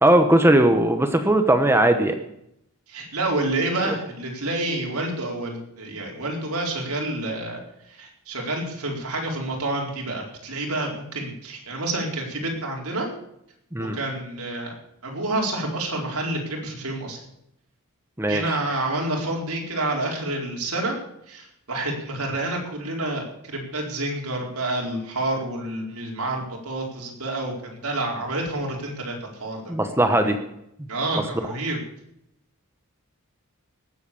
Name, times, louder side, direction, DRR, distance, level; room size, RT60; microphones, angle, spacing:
voice 1, 0.0-2.1 3.8-3.9 13.7-14.0 18.2-18.6 29.7-30.4, right 1 dB, 10° right, 7 dB, 1.0 m, -19 dB
voice 2, 2.9-13.1 13.8-14.7 15.0-17.2 18.3-21.0 21.3-29.7 30.1-30.4 30.9-31.8, right 2 dB, 80° right, 0 dB, 4.5 m, -28 dB
19.0 x 8.2 x 6.9 m, 0.78 s
head